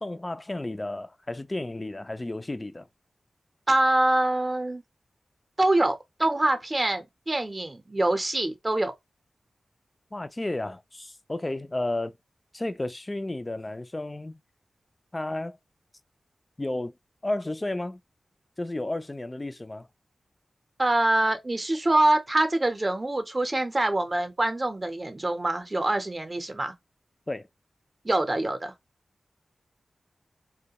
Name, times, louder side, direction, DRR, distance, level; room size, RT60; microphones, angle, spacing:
voice 1, 0.0-2.9 10.1-12.1 12.5-14.4 15.1-15.6 16.6-16.9 17.2-18.0 18.6-19.9 27.3-27.5, left 2 dB, 30° left, 0.3 m, -32 dB
voice 2, 3.7-4.8 5.6-8.9 20.8-26.7 28.0-28.7, right 2 dB, 35° right, 0.6 m, -25 dB
2.2 x 2.1 x 2.7 m
cardioid pair, 40°, 0 cm